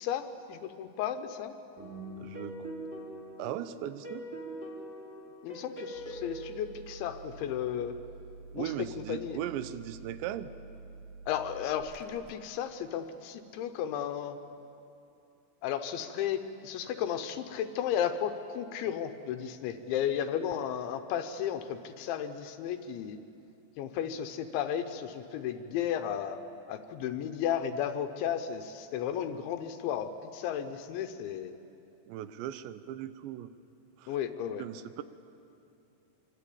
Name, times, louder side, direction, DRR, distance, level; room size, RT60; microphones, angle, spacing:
voice 1, 0.0-1.6 5.4-8.0 8.5-9.4 11.3-14.4 15.6-23.2 23.8-26.4 26.7-31.5 34.1-34.7, left 9 dB, 80° left, 8 dB, 3.2 m, -34 dB
sound 1, 1.8-7.1, right 1 dB, 5° right, 3.3 m, -43 dB
voice 2, 2.2-2.7 3.4-4.3 8.5-10.5 32.1-33.5 34.0-34.2 34.6-35.0, right 12 dB, 80° right, 13 dB, 3.0 m, -38 dB
sound 2, 5.9-12.4, right 4 dB, 60° right, 2.2 m, -49 dB
26.5 x 24.0 x 8.6 m, 2.7 s
omnidirectional pair, 5.4 m